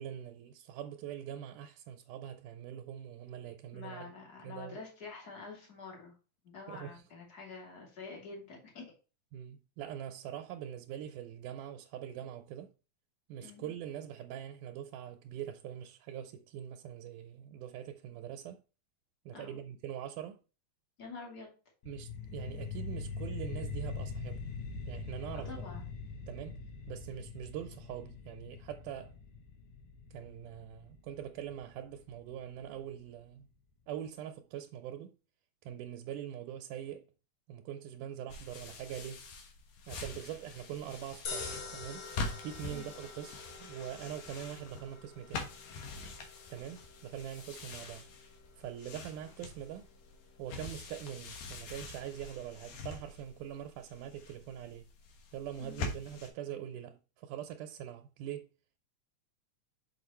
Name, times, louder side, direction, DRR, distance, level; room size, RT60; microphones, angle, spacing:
voice 1, 0.0-4.1 4.4-4.8 6.7-7.0 9.3-12.7 13.3-18.6 19.3-20.4 21.9-24.6 24.9-25.6 26.3-26.6 26.9-29.2 30.1-33.5 33.9-35.1 35.6-37.1 37.5-39.3 39.9-42.1 42.4-45.5 46.5-48.1 48.6-49.9 50.4-54.9 55.3-58.5, right 10 dB, 85° right, 2.2 m, -43 dB
voice 2, 3.7-6.1 6.4-8.8 13.4-13.7 19.3-19.6 21.0-21.5 25.3-25.9 42.7-43.0 55.6-55.9, left 4 dB, 30° left, 2.7 m, -47 dB
sound 1, 21.8-32.9, left 4 dB, 75° left, 2.6 m, -43 dB
sound 2, 38.3-56.3, left 3 dB, 90° left, 2.9 m, -45 dB
sound 3, 41.2-53.6, left 4 dB, 50° left, 1.6 m, -49 dB
6.4 x 5.0 x 4.2 m
omnidirectional pair, 3.6 m